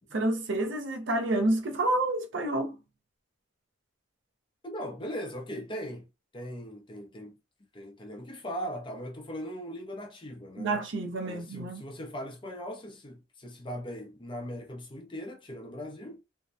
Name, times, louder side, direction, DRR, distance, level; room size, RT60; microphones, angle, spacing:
voice 1, 0.1-2.8 10.6-11.8, right 2 dB, 60° right, 0.6 m, -29 dB
voice 2, 4.6-6.1 6.3-7.3 7.7-10.8 11.2-16.2, equal, 25° left, 0.5 m, -39 dB
2.6 x 2.1 x 2.4 m
head